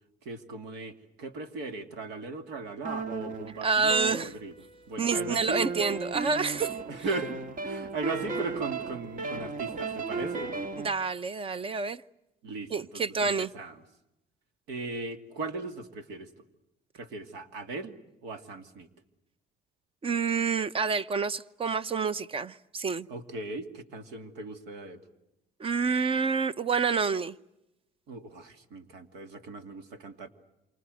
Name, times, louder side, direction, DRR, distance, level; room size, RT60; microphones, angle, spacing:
voice 1, 0.2-3.9 4.2-4.5 4.9-5.6 6.9-7.4 7.6-10.5 12.4-13.8 14.7-16.3 16.9-17.9 18.2-18.9 23.1-25.0 28.1-30.3, right 3 dB, 85° right, 2.6 m, -38 dB
sound 1, 2.8-4.7 5.1-10.9, right 3 dB, 50° right, 1.9 m, -35 dB
voice 2, 3.6-4.3 5.0-6.7 10.8-12.0 12.7-13.5 20.0-23.1 25.6-27.3, right 5 dB, 35° right, 0.9 m, -28 dB
28.0 x 26.0 x 7.9 m
cardioid pair, 110°, 17 cm